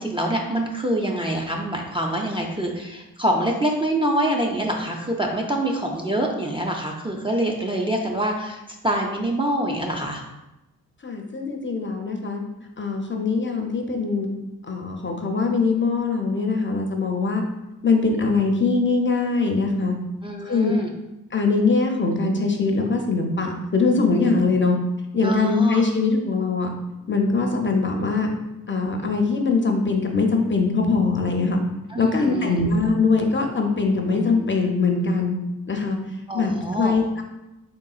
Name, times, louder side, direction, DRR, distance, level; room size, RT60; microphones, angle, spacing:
voice 1, 0.0-10.2 20.2-20.9 25.2-25.8 31.9-32.5 36.3-36.9, right 1 dB, 15° right, 0 dB, 0.4 m, -25 dB
voice 2, 11.0-12.4 12.8-14.3 14.6-17.4 17.8-20.0 20.4-20.7 21.3-24.8 25.1-26.7 27.1-28.3 28.7-31.6 32.0-35.3 35.7-36.0 36.3-37.2, left 4 dB, 35° left, 2 dB, 0.5 m, -22 dB
3.8 x 3.7 x 2.3 m, 0.96 s
wide cardioid pair, 85°, 35 cm